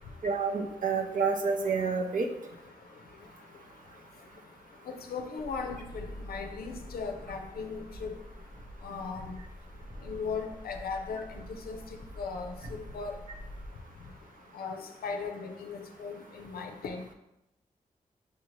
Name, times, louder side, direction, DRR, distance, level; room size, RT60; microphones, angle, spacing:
voice 1, 0.2-2.3, right 5 dB, 60° right, 1 dB, 0.6 m, -28 dB
voice 2, 5.1-8.1 8.8-9.4 10.0-11.8 12.2-12.6 12.9-13.2 14.5-17.1, left 5 dB, 85° left, 4 dB, 0.5 m, -37 dB
sound 1, 5.4-13.7, equal, 80° right, 1.5 m, -46 dB
5.5 x 2.6 x 3.1 m, 0.87 s
supercardioid pair, 45°, 15 cm